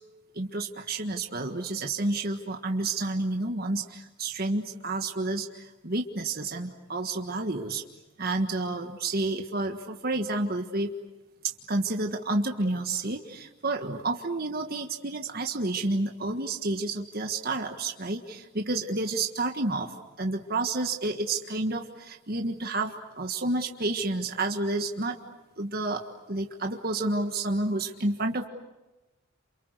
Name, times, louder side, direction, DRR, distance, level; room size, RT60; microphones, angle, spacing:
voice 1, 0.3-5.5 5.8-7.8 8.2-10.9 11.7-19.9 20.2-25.2 25.6-26.0 26.3-28.5, right 2 dB, 50° right, 4 dB, 1.6 m, -30 dB
29.0 x 28.0 x 6.7 m, 1.0 s
head